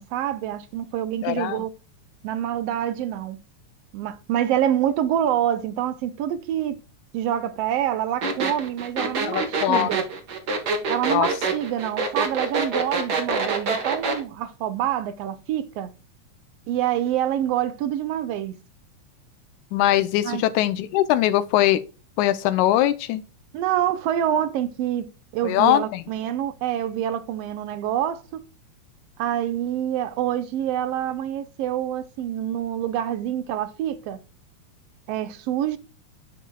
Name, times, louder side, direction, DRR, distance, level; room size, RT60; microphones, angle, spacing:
voice 1, 0.0-1.7 2.2-3.4 3.9-6.8 7.1-10.0 10.9-15.9 16.7-18.6 20.2-20.4 23.5-28.4 29.2-34.2 35.1-35.8, right 11 dB, 75° right, 1.5 m, -26 dB
voice 2, 1.2-1.6 9.3-9.9 11.1-11.3 19.7-21.8 22.2-23.2 25.4-26.0, left 13 dB, 85° left, 2.1 m, -21 dB
sound 1, 8.2-14.2, right 4 dB, 45° right, 1.4 m, -25 dB
10.5 x 5.5 x 2.3 m
omnidirectional pair, 3.4 m